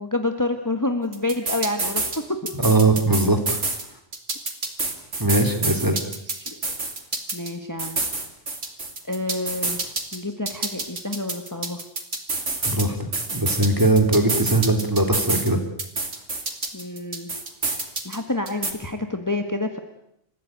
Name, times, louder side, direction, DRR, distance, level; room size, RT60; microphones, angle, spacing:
voice 1, 0.0-2.0 2.3-2.4 6.3-6.6 7.3-8.0 9.0-9.8 10.1-11.8 16.7-17.3 18.0-19.8, left 2 dB, 15° left, 6 dB, 1.6 m, -28 dB
sound 1, 1.1-2.2 2.5-3.8 4.1-7.5 7.8-10.2 10.5-12.9 13.1-15.5 15.8-18.2 18.5-18.7, right 3 dB, 70° right, 3.4 m, -27 dB
voice 2, 2.6-3.6 5.2-6.0 12.7-13.0 13.3-15.6, right 2 dB, 15° right, 6 dB, 3.0 m, -20 dB
30.0 x 15.0 x 9.2 m, 0.79 s
omnidirectional pair, 1.3 m